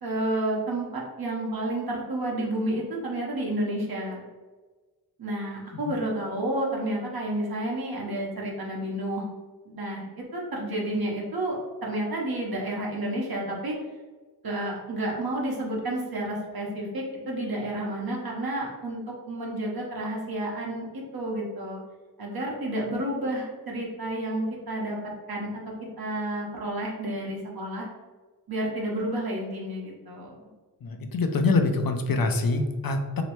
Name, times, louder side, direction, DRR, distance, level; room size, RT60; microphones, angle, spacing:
voice 1, 0.0-4.2 5.2-9.3 9.6-13.7 14.4-21.8 22.2-25.0 25.3-25.6 26.0-27.9 28.5-30.4, right 1 dB, 60° right, -3 dB, 1.0 m, -30 dB
voice 2, 30.8-33.2, left 3 dB, 60° left, 5 dB, 0.5 m, -25 dB
3.1 x 2.9 x 3.0 m, 1.3 s
wide cardioid pair, 80°, 41 cm